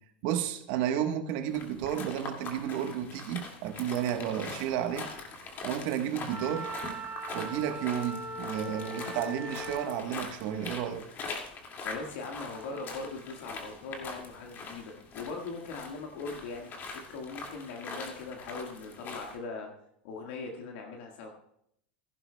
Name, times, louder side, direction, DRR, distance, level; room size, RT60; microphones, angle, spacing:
voice 1, 0.2-5.1 5.6-6.7 7.3-11.1, right 10 dB, 60° right, 1.2 m, -32 dB
sound 1, 1.5-19.4, left 3 dB, 35° left, 2.1 m, -43 dB
Wind instrument woodwind instrument, 6.3-10.0, right 1 dB, 35° right, 2.7 m, -40 dB
voice 2, 11.8-19.7 20.0-21.3, left 3 dB, 70° left, 1.6 m, -40 dB
15.5 x 11.0 x 2.2 m
supercardioid pair, 120°, 6 cm